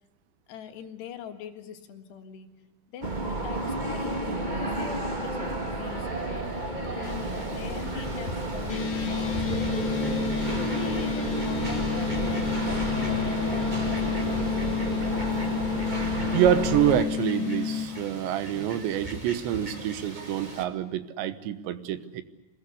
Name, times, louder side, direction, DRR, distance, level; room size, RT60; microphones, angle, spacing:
voice 1, 0.5-2.5 2.9-9.4 10.0-14.6, left 8 dB, 75° left, 6 dB, 3.8 m, -42 dB
sound 1, 3.0-17.0, right 2 dB, 35° right, 0.7 m, -31 dB
Fowl, 7.0-20.6, right 1 dB, 20° right, 1.3 m, -40 dB
sound 2, 8.7-17.9, left 7 dB, 40° left, 2.0 m, -30 dB
voice 2, 16.3-22.2, right 11 dB, 90° right, 12 dB, 3.5 m, -26 dB
25.0 x 20.5 x 8.1 m, 1.1 s
omnidirectional pair, 5.0 m